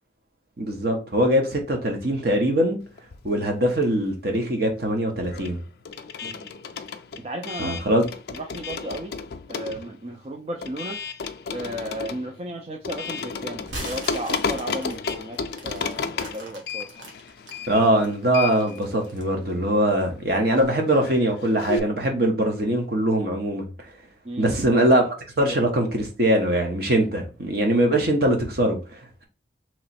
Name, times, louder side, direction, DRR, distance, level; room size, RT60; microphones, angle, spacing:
voice 1, 0.6-2.8 3.2-5.6 7.6-8.0 17.7-23.7 24.4-29.2, right 1 dB, 55° right, 1.0 m, -22 dB
sound 1, 3.0-4.2 4.5-21.8, left 5 dB, 60° left, 0.4 m, -33 dB
voice 2, 6.2-6.5 7.2-7.8 8.3-9.1 9.5-11.0 11.5-16.9 24.2-24.9 25.4-25.6, right 1 dB, 35° right, 0.4 m, -34 dB
sound 2, 13.7-17.6 18.0-19.3, right 1 dB, 85° right, 1.2 m, -40 dB
3.1 x 3.0 x 4.2 m
head